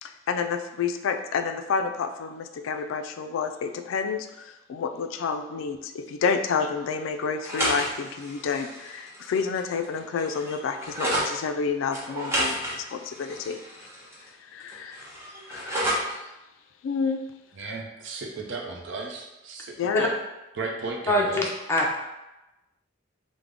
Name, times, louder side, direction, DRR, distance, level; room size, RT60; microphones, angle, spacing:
voice 1, 0.0-13.6 14.5-15.1 15.5-15.7 16.0-16.2 16.8-17.2 19.8-20.1, left 5 dB, 90° left, 7 dB, 0.3 m, -29 dB
sound 1, 7.3-11.3 11.9-14.3 14.6-16.2, equal, 15° right, 0.8 m, -31 dB
voice 2, 17.5-20.1 20.6-21.4, right 3 dB, 70° right, 1 dB, 0.6 m, -35 dB
voice 3, 21.1-22.0, left 1 dB, 15° left, -2 dB, 0.4 m, -23 dB
3.5 x 2.1 x 3.4 m, 0.98 s
head